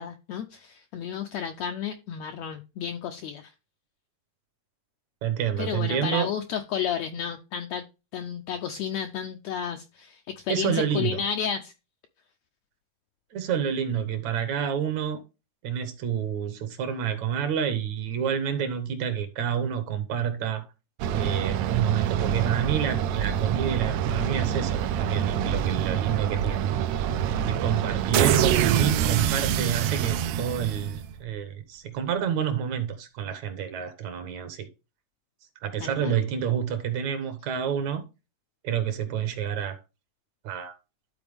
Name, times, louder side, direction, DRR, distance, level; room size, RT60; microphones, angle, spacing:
voice 1, 0.0-3.5 5.6-7.8 8.1-11.7 28.1-28.4 35.8-36.1, left 8 dB, 80° left, 1.6 m, -32 dB
voice 2, 5.2-6.3 10.5-11.2 13.3-15.2 15.6-20.7 21.1-26.7 27.5-34.7 35.6-38.0 38.6-39.8 40.4-40.7, right 8 dB, 70° right, 2.0 m, -28 dB
sound 1, 21.0-31.3, right 9 dB, 85° right, 1.6 m, -26 dB
12.0 x 4.3 x 3.5 m
omnidirectional pair, 3.8 m